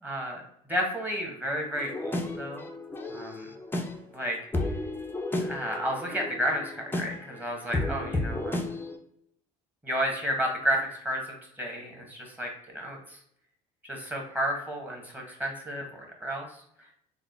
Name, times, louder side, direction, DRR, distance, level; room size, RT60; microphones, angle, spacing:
voice 1, 0.0-0.4 0.7-2.7 3.1-3.3 4.1-4.4 5.4-8.6 9.8-13.2 13.8-16.5, equal, 10° right, 0 dB, 1.3 m, -32 dB
sound 1, 1.7-9.0, left 2 dB, 10° left, 0.6 m, -33 dB
3.6 x 2.0 x 3.5 m, 0.72 s
supercardioid pair, 80°, 18 cm